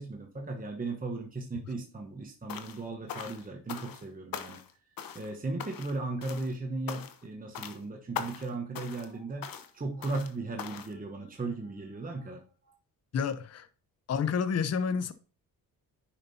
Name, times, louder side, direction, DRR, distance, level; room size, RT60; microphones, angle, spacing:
voice 1, 0.0-4.6 5.1-12.7, right 3 dB, 25° right, 1.2 m, -37 dB
sound 1, 2.5-2.8 3.1-4.1 4.3-4.7 5.0-5.3 5.6-6.0 6.2-6.5 6.9-7.3 7.6-7.8 8.2-8.5 8.8-9.1 9.4-9.7 10.0-10.3 10.6-10.9, left 8 dB, 65° left, 1.0 m, -40 dB
voice 2, 13.1-13.7 14.1-15.1, left 6 dB, 45° left, 0.7 m, -29 dB
9.9 x 5.2 x 2.8 m
cardioid pair, 75°, 37 cm